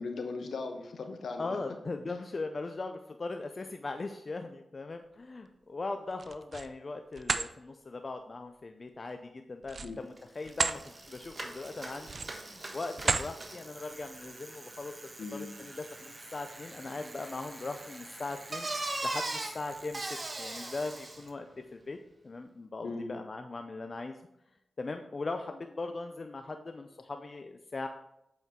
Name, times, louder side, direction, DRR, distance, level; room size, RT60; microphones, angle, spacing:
voice 1, 0.0-1.6 2.1-2.2 9.8-10.0 15.2-15.5 22.8-23.1, left 3 dB, 75° left, 6 dB, 0.9 m, -38 dB
voice 2, 1.4-10.8 11.1-14.9 15.3-18.7 19.0-21.5 21.7-22.0 22.2-24.2 24.8-27.9, left 3 dB, 50° left, 6 dB, 0.5 m, -39 dB
sound 1, 6.1-6.7 7.1-7.5 9.6-10.8 11.3-11.5 12.0-12.5 13.0-13.3, right 4 dB, 60° right, 0.4 m, -32 dB
Bicycle, 10.2-10.3 10.5-21.3, right 2 dB, 40° right, 1.3 m, -41 dB
8.0 x 4.5 x 3.7 m, 0.84 s
supercardioid pair, 40°, 0 cm